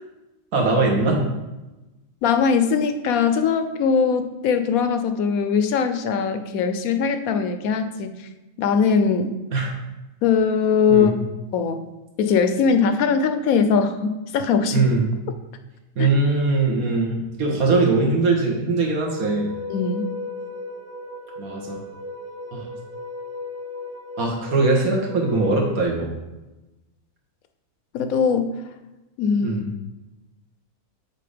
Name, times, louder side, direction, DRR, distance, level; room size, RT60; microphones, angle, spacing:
voice 1, 0.5-1.3 9.5-9.7 10.9-11.1 14.7-15.1 16.0-19.5 21.4-21.8 22.5-22.7 24.2-26.1 29.4-29.7, right 3 dB, 70° right, 0 dB, 1.8 m, -21 dB
voice 2, 2.2-8.3 8.6-9.3 10.2-11.1 11.5-11.8 12.2-14.8 16.0-16.1 19.7-20.1 27.9-28.6 29.2-29.6, left 6 dB, 75° left, 8 dB, 1.0 m, -21 dB
sound 1, 18.9-25.8, left 2 dB, 45° right, 0.9 m, -35 dB
7.7 x 4.1 x 5.0 m, 1.0 s
omnidirectional pair, 1.6 m